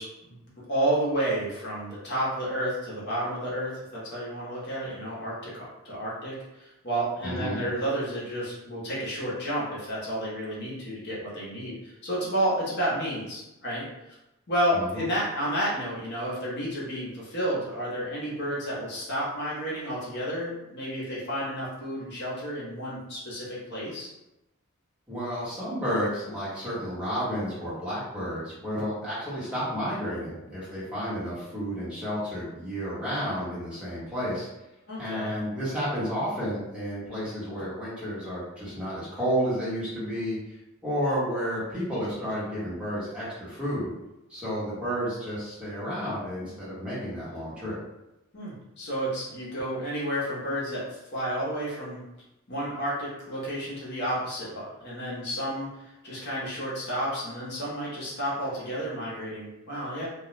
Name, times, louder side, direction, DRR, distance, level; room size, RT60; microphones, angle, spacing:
voice 1, 0.0-13.9 14.5-24.1 34.9-35.3 48.3-52.0 52.5-60.1, right 1 dB, 55° left, -7 dB, 0.9 m, -31 dB
voice 2, 7.2-7.6 14.7-15.0 25.1-34.5 35.0-40.4 40.8-43.9 44.3-47.8, equal, 5° right, -10 dB, 1.2 m, -31 dB
2.3 x 2.2 x 3.0 m, 0.94 s
head